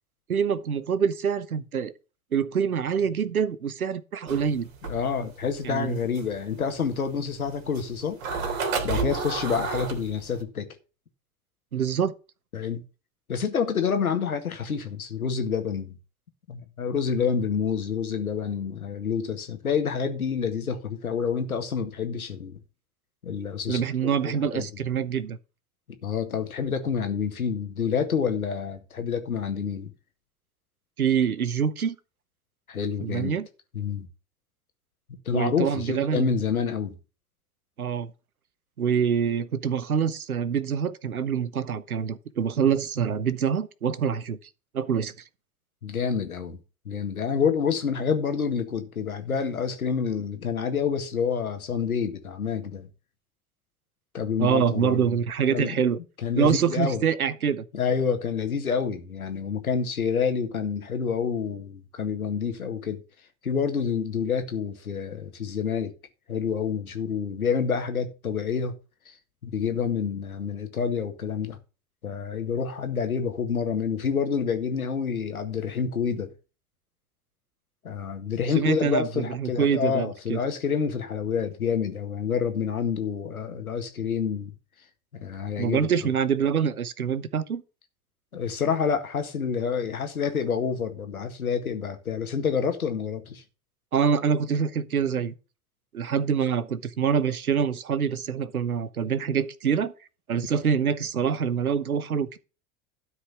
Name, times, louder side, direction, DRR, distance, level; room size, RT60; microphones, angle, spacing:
voice 1, 0.3-1.9 2.3-4.7 5.6-6.0 11.7-12.1 23.7-25.4 31.0-32.0 33.0-33.5 35.3-36.3 37.8-38.1 38.8-44.4 44.7-45.1 54.4-56.0 56.4-57.6 78.5-80.4 85.6-87.6 93.9-95.3 95.9-99.9 100.3-102.4, right 7 dB, 90° right, 0.9 m, -25 dB
sound 1, 4.3-10.4, right 4 dB, 70° right, 2.8 m, -31 dB
voice 2, 4.9-8.2 8.8-10.7 12.5-12.8 13.3-15.9 16.5-22.6 23.2-24.7 26.0-29.9 32.7-33.4 33.7-34.1 35.1-37.0 45.8-46.6 46.9-52.9 54.1-55.1 55.5-55.8 56.2-57.0 57.7-63.0 63.4-65.9 66.3-68.7 69.1-69.2 69.4-71.6 72.0-76.3 77.8-84.5 85.1-85.9 88.3-93.4, left 6 dB, 85° left, 1.9 m, -28 dB
12.5 x 4.9 x 6.0 m
figure-of-eight pair, 80°, 42 cm